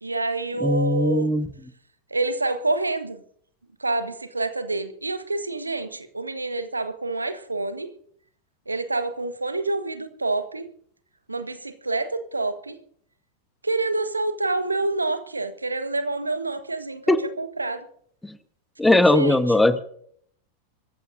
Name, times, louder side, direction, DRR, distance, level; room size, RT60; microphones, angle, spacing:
voice 1, 0.0-1.3 2.1-3.2 3.8-7.9 8.7-10.7 11.3-12.8 13.6-17.8 18.9-19.7, right 2 dB, 80° right, 10 dB, 1.3 m, -27 dB
voice 2, 0.6-1.5 17.1-17.2 18.2-18.4 18.8-19.8, left 2 dB, 5° left, 14 dB, 1.1 m, -19 dB
24.5 x 14.5 x 2.7 m, 0.62 s
figure-of-eight pair, 90°, 0 cm